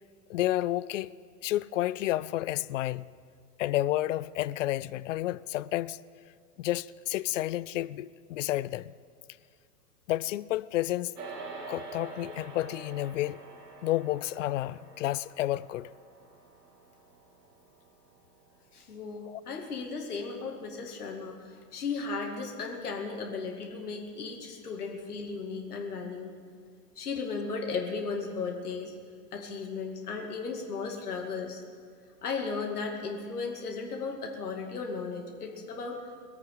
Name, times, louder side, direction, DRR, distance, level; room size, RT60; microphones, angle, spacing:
voice 1, 0.3-1.1 1.4-3.1 3.6-6.0 6.6-8.9 10.1-11.1 11.7-13.4 13.8-15.9 19.3-19.4, left 15 dB, 55° left, 0.5 m, -30 dB
sound 1, 11.1-20.7, right 4 dB, 75° right, 2.4 m, -47 dB
voice 2, 18.7-26.3 27.0-28.9 29.3-31.6 32.2-36.0, left 4 dB, 70° left, 2.5 m, -35 dB
22.0 x 8.5 x 6.5 m
figure-of-eight pair, 100°, 47 cm